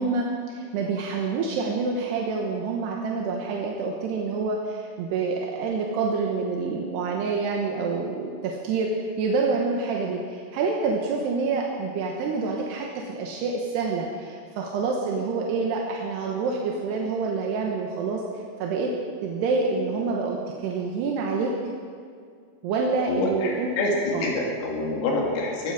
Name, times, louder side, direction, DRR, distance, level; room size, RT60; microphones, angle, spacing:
voice 1, 0.0-18.2 18.6-18.9 19.2-20.4 20.6-21.5 22.6-23.7 24.1-24.3, right 4 dB, 70° right, -1 dB, 2.8 m, -27 dB
voice 2, 23.1-25.7, left 2 dB, 85° left, -2 dB, 5.3 m, -26 dB
18.5 x 15.5 x 4.9 m, 2.2 s
omnidirectional pair, 5.9 m